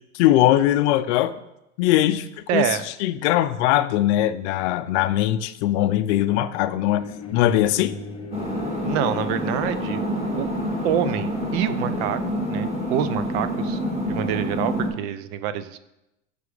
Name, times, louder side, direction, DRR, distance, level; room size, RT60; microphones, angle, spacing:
voice 1, 0.1-1.3 1.8-2.7 3.0-7.0 7.3-8.0, left 13 dB, 65° left, 12 dB, 0.5 m, -20 dB
voice 2, 2.5-2.9 8.8-10.0 10.3-10.5 10.8-12.2 12.5-13.8 14.1-15.8, right 10 dB, 60° right, 13 dB, 0.5 m, -26 dB
sound 1, 6.9-12.2, left 5 dB, 15° left, 0.4 m, -38 dB
sound 2, 8.3-14.9, equal, 15° right, 2.1 m, -27 dB
5.8 x 4.9 x 4.9 m, 0.90 s
supercardioid pair, 135°, 37 cm